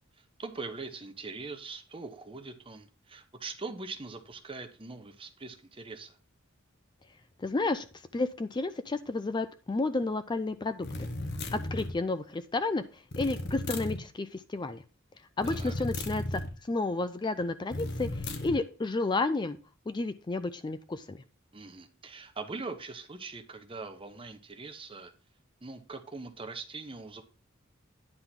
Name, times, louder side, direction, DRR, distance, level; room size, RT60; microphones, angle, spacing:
voice 1, 0.2-6.2 15.4-15.7 21.5-25.1 25.6-27.2, right 3 dB, 25° right, 7 dB, 1.0 m, -42 dB
voice 2, 7.4-7.9 8.1-10.9 11.5-14.8 15.4-19.6 19.9-21.2, left 3 dB, 20° left, 11 dB, 0.4 m, -31 dB
Wide growling reese, 10.8-12.0 13.1-14.0 15.4-16.5 17.7-18.6, left 1 dB, 60° left, 1.1 m, -35 dB
9.9 x 3.7 x 5.9 m, 0.35 s
head